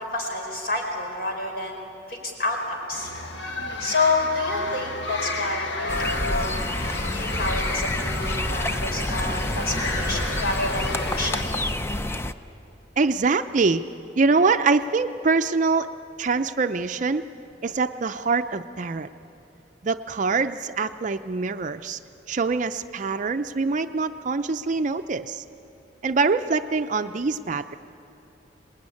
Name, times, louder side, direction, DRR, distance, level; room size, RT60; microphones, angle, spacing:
voice 1, 0.1-1.8 2.1-3.1 3.8-6.5 7.1-11.5, left 2 dB, 55° left, 1 dB, 5.0 m, -28 dB
sound 1, 2.9-11.4, left 2 dB, 85° left, 1.7 m, -31 dB
sound 2, 5.9-12.3, left 1 dB, 15° left, 0.5 m, -28 dB
voice 2, 13.0-13.8 14.2-15.9 16.2-17.2 17.6-19.1 19.8-22.0 22.3-25.4 26.0-27.8, right 4 dB, 45° right, 9 dB, 0.5 m, -24 dB
25.0 x 19.5 x 9.7 m, 2.9 s
head